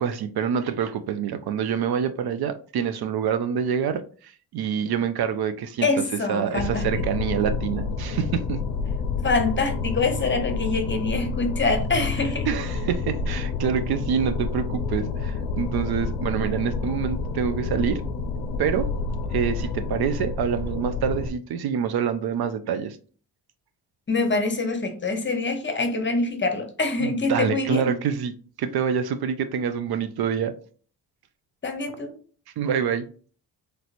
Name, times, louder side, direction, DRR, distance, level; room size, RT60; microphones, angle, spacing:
voice 1, 0.0-5.9 6.3-8.6 12.5-18.0 18.6-18.9 19.3-23.0 27.0-30.5 32.6-33.1, right 7 dB, 60° right, 0.5 m, -26 dB
voice 2, 5.8-6.9 9.2-12.5 24.1-27.9 31.6-32.1, left 3 dB, 25° left, 0.8 m, -25 dB
sound 1, 6.6-21.3, left 4 dB, 75° left, 0.6 m, -29 dB
3.2 x 2.8 x 2.5 m
supercardioid pair, 50°, 43 cm